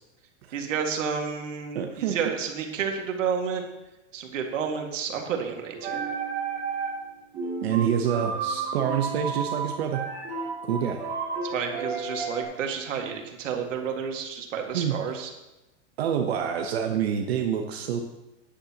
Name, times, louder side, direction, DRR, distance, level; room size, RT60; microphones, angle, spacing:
voice 1, 0.5-3.6 4.1-6.0 11.4-15.3, right 6 dB, 75° right, 3 dB, 2.0 m, -30 dB
voice 2, 1.7-2.2 7.6-10.0 10.6-11.0 14.7-14.9 16.0-18.0, right 8 dB, 55° right, 4 dB, 0.9 m, -27 dB
sound 1, 5.7-7.1 7.3-12.4, right 5 dB, 20° right, 2.7 m, -32 dB
14.5 x 10.0 x 2.9 m, 1.0 s
supercardioid pair, 175°, 37 cm